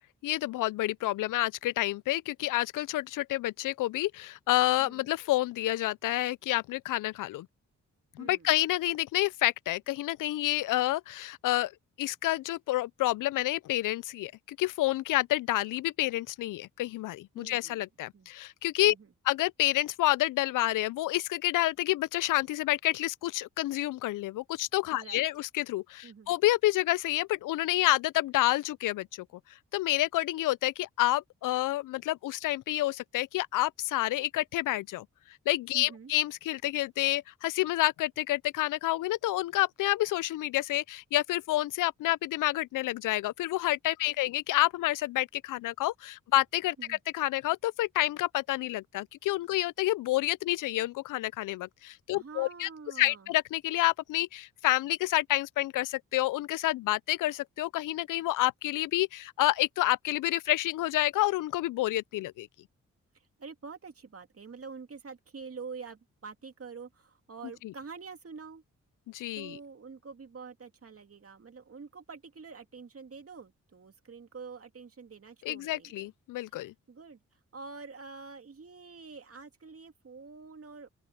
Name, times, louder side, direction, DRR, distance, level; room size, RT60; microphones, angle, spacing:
voice 1, 0.2-7.5 8.2-11.7 12.0-19.0 19.2-29.3 29.7-35.1 35.5-52.7 53.0-62.5 67.6-67.7 69.1-69.6 75.5-76.7, left 16 dB, 80° left, 0.5 m, -29 dB
voice 2, 4.8-5.1 8.2-8.5 17.3-17.8 18.1-18.3 18.8-19.1 24.9-25.3 26.0-26.3 35.7-36.1 46.8-47.0 52.1-53.3 63.1-68.6 69.3-76.1 76.5-77.2 77.5-80.9, right 5 dB, 45° right, 2.6 m, -46 dB
open air
cardioid pair, 55°, 31 cm